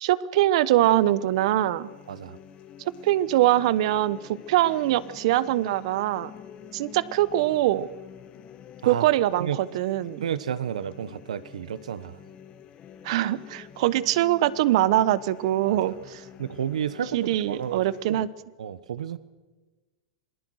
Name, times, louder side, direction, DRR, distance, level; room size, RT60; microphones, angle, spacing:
voice 1, 0.0-1.9 3.0-6.3 6.7-7.9 8.8-9.5 9.7-10.2 13.0-16.2 17.1-18.3, right 14 dB, 65° right, 18 dB, 1.0 m, -23 dB
sound 1, 0.8-18.2, left 9 dB, 35° left, 1.9 m, -48 dB
voice 2, 2.1-2.4 8.8-9.1 9.4-9.6 10.2-12.2 15.6-15.8 16.4-18.2 18.6-19.2, right 9 dB, 85° right, 16 dB, 1.1 m, -31 dB
27.5 x 19.5 x 6.4 m, 1.2 s
hypercardioid pair, 125°, 4 cm